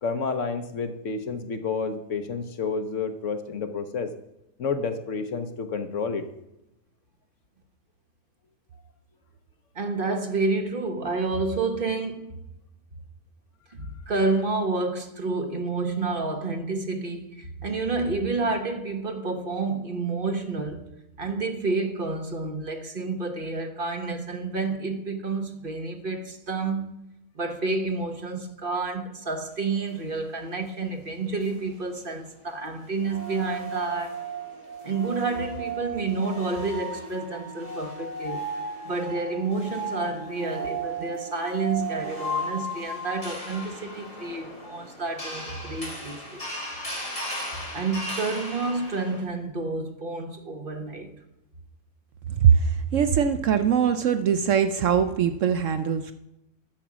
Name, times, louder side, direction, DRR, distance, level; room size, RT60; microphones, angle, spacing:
voice 1, 0.0-4.1 4.6-6.2, left 4 dB, 60° left, 1.1 m, -30 dB
voice 2, 9.7-12.3 13.7-20.8 21.2-26.9 27.3-34.2 34.8-38.4 38.8-46.4 47.7-51.1, right 3 dB, 40° right, 1.2 m, -29 dB
sound 1, 31.4-31.5 33.0-49.2, right 2 dB, 25° left, 3.5 m, -35 dB
voice 3, 52.4-56.1, right 7 dB, 65° right, 0.9 m, -22 dB
12.0 x 7.1 x 6.1 m
omnidirectional pair, 1.6 m